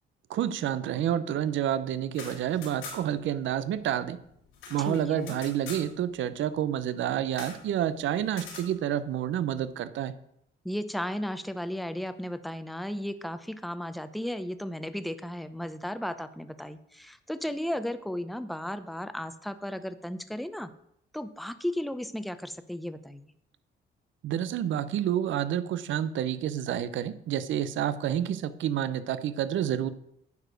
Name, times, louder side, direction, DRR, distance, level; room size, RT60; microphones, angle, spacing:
voice 1, 0.3-4.2 4.7-10.1 24.2-29.9, right 10 dB, 75° right, 14 dB, 0.7 m, -29 dB
sound 1, 2.0-3.3 3.5-3.6 3.9-5.9 7.3-7.6 8.3-8.7, left 4 dB, 85° left, 3.8 m, -43 dB
voice 2, 4.8-5.4 10.6-20.7 21.1-23.3, equal, ahead, 11 dB, 0.6 m, -35 dB
9.4 x 4.9 x 6.3 m, 0.75 s
cardioid pair, 90°, 20 cm